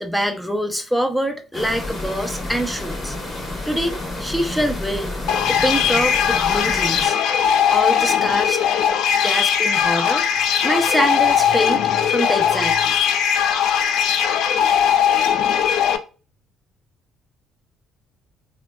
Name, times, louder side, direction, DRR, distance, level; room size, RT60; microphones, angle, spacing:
voice 1, 0.0-3.2 3.6-5.1 5.4-7.2 7.7-8.6 9.2-10.2 10.6-13.0, equal, ahead, 0.5 m, -24 dB
sound 1, 1.5-7.1, left 2 dB, 25° left, 1.0 m, -30 dB
sound 2, 5.3-16.0, left 8 dB, 70° left, 0.3 m, -19 dB
3.2 x 2.2 x 2.3 m
cardioid pair, 90°, 0 cm